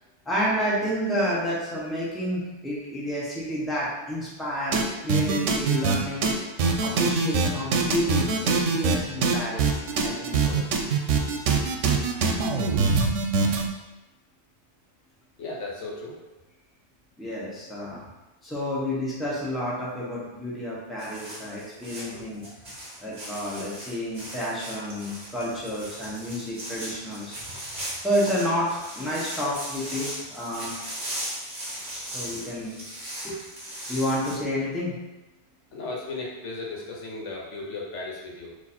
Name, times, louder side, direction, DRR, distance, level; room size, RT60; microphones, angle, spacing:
voice 1, 0.3-6.3 6.8-10.6 17.2-18.0 18.4-22.5 23.0-27.4 28.0-28.7 28.9-30.7 32.1-32.7 33.2-33.4 33.9-34.9, equal, ahead, -6 dB, 0.9 m, -30 dB
sound 1, 4.7-4.8 5.1-6.0 6.2-6.3 6.6-9.0 9.2-13.6, right 5 dB, 90° right, 0.9 m, -23 dB
voice 2, 15.4-16.2 22.1-22.2 35.7-38.5, left 3 dB, 80° left, -2 dB, 1.2 m, -35 dB
sound 2, 21.0-34.3, right 1 dB, 40° right, 1.3 m, -38 dB
4.0 x 2.6 x 4.3 m, 1.0 s
omnidirectional pair, 1.2 m